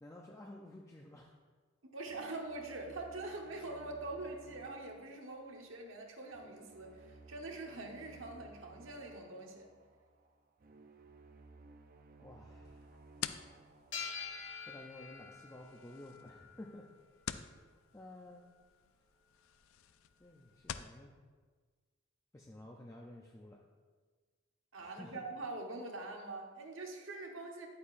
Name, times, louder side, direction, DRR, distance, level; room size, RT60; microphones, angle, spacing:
voice 1, 0.0-1.3 12.2-12.9 14.7-16.8 17.9-18.4 20.2-21.1 22.3-23.6 24.8-25.3, left 1 dB, 15° left, -1 dB, 0.5 m, -52 dB
voice 2, 1.8-9.7 24.7-27.7, right 2 dB, 75° right, 1 dB, 1.2 m, -44 dB
sound 1, 2.1-15.2, right 3 dB, 45° right, 0.5 m, -59 dB
sound 2, 12.6-21.0, left 9 dB, 85° left, 0.4 m, -49 dB
sound 3, 13.9-16.9, left 6 dB, 65° left, 1.6 m, -46 dB
10.5 x 8.4 x 2.6 m, 1.5 s
head